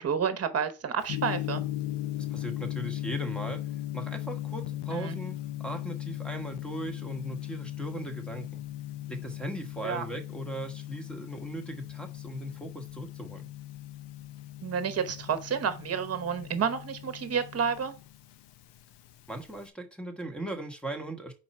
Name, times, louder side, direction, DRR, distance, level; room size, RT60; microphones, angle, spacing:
voice 1, 0.0-1.6 4.9-5.2 9.8-10.0 14.6-17.9, right 7 dB, 40° right, 10 dB, 1.1 m, -30 dB
Gong, 1.0-19.7, left 14 dB, 85° left, 0.8 m, -38 dB
voice 2, 2.3-3.6 3.9-8.5 9.1-13.5 19.3-21.3, right 2 dB, ahead, 6 dB, 1.1 m, -38 dB
4.7 x 4.2 x 5.4 m, 0.33 s
cardioid pair, 130°, 40 cm